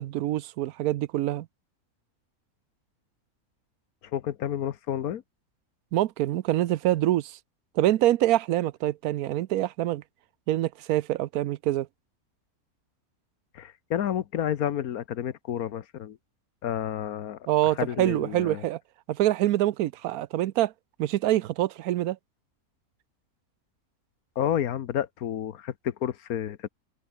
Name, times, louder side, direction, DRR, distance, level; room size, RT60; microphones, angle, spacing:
voice 1, 0.0-1.5 5.9-7.4 7.8-10.0 10.5-11.9 17.5-18.8 19.1-20.7 21.0-22.2, right 14 dB, 80° right, 1.1 m, -25 dB
voice 2, 4.1-5.2 13.5-16.2 16.6-17.5 17.8-18.6 24.4-26.7, left 10 dB, 80° left, 1.4 m, -30 dB
omnidirectional pair, 1.5 m